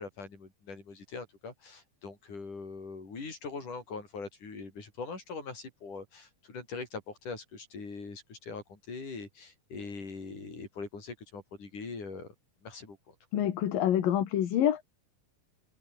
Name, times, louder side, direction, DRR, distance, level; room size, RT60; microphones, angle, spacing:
voice 1, 0.0-12.3 12.6-13.1, left 4 dB, 65° left, 7.9 m, -42 dB
voice 2, 13.3-14.8, left 10 dB, 80° left, 3.6 m, -27 dB
omnidirectional pair, 3.9 m